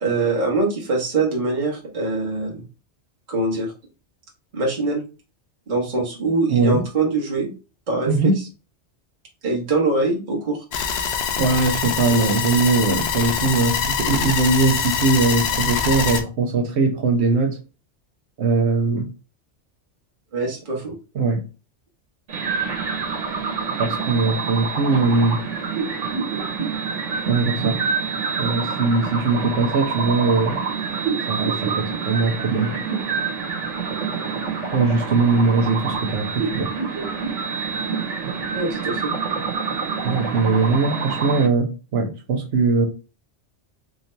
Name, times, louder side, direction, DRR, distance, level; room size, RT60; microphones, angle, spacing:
voice 1, 0.0-2.6 3.3-3.7 4.5-5.0 5.7-7.5 7.9-8.3 9.4-10.6 20.3-20.9 38.5-39.1, right 3 dB, 40° right, 1.2 m, -23 dB
voice 2, 6.5-6.8 8.1-8.4 11.4-17.6 18.4-19.1 21.1-21.4 23.8-25.4 27.2-27.8 28.4-30.6 31.3-32.8 34.7-36.7 40.0-42.9, right 3 dB, 65° right, 1.0 m, -20 dB
sound 1, 10.7-16.2, left 7 dB, 65° left, 0.8 m, -24 dB
sound 2, 22.3-41.5, right 5 dB, 85° right, 1.3 m, -27 dB
3.7 x 2.8 x 3.1 m
omnidirectional pair, 1.2 m